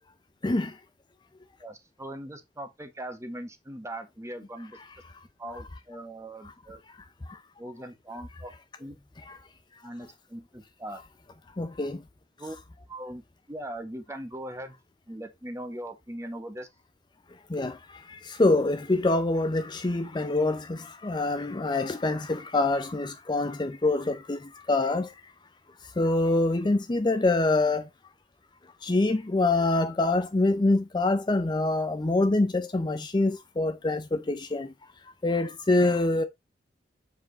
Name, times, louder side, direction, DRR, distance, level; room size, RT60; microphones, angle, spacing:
voice 1, 1.6-4.8 5.4-6.8 7.6-8.5 8.8-9.0 9.8-11.0 12.4-12.6 12.9-14.7 15.1-16.7, right 1 dB, 15° right, 1.3 m, -40 dB
voice 2, 11.6-12.0 17.5-17.7 18.4-20.8 21.0-24.4 24.7-25.1 26.0-27.8 28.8-34.7 35.2-36.2, left 2 dB, 25° left, 0.5 m, -25 dB
7.5 x 4.7 x 3.9 m
head